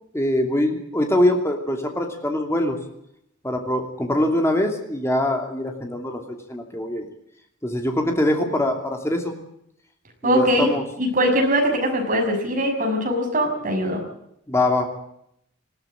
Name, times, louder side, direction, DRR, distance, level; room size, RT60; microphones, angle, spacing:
voice 1, 0.1-2.8 3.4-6.2 6.5-7.1 7.6-9.4 10.2-10.8 14.5-14.9, left 1 dB, 15° left, 3 dB, 2.8 m, -23 dB
voice 2, 10.2-10.7 11.0-14.0, equal, 40° right, 2 dB, 6.3 m, -21 dB
20.0 x 16.0 x 8.8 m, 0.75 s
head